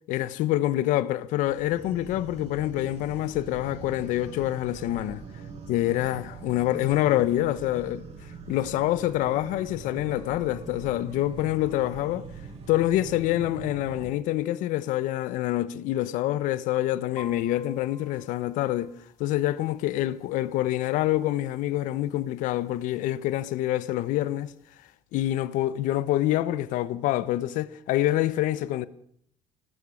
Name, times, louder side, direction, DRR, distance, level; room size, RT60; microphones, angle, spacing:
voice 1, 0.1-5.2 5.7-8.0 8.5-12.3 12.7-18.9 19.2-24.5 25.1-28.9, left 14 dB, 75° left, 1.1 m, -26 dB
sound 1, 1.4-14.1, right 5 dB, 55° right, 7.4 m, -42 dB
sound 2, 17.2-25.0, left 3 dB, 25° left, 5.4 m, -53 dB
23.0 x 19.0 x 6.5 m
cardioid pair, 125°, 13 cm